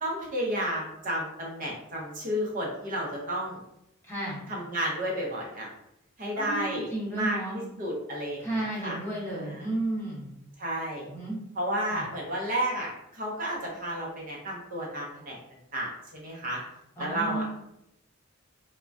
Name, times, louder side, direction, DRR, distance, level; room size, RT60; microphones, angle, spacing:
voice 1, 0.0-3.6 4.5-5.7 6.2-6.9 7.1-9.0 9.3-9.7 10.6-11.1 11.6-15.4 15.7-16.6 17.0-17.5, right 1 dB, 40° right, -3 dB, 0.6 m, -32 dB
voice 2, 4.0-4.4 6.3-7.6 8.4-10.3 11.1-11.4 11.9-12.1 17.0-17.5, right 2 dB, 10° left, -6 dB, 0.7 m, -33 dB
3.3 x 2.1 x 2.5 m, 0.84 s
head